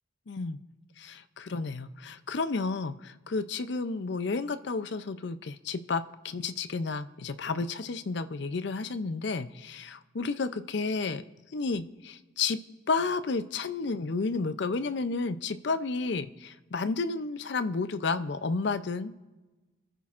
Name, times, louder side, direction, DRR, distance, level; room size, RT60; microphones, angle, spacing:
voice 1, 0.3-0.6 1.0-11.2 11.5-12.6 12.9-19.1, left 4 dB, 60° left, 12 dB, 0.5 m, -31 dB
27.5 x 10.0 x 2.5 m, 1.2 s
head